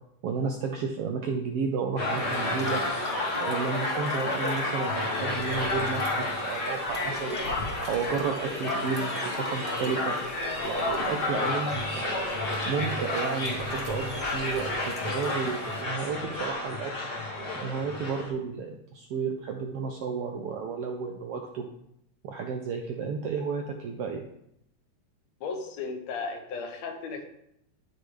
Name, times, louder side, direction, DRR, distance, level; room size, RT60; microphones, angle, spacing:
voice 1, 0.2-2.8 3.4-7.4 7.8-10.2 10.6-12.3 12.7-16.9 17.6-21.7 22.2-24.2, right 5 dB, 75° right, 2 dB, 1.4 m, -32 dB
sound 1, 2.0-18.3, left 2 dB, 45° left, 1.4 m, -31 dB
sound 2, 2.0-15.8, right 1 dB, ahead, 2.0 m, -46 dB
voice 2, 25.4-27.2, left 4 dB, 70° left, 3 dB, 2.2 m, -35 dB
12.5 x 4.3 x 3.2 m, 0.76 s
omnidirectional pair, 3.3 m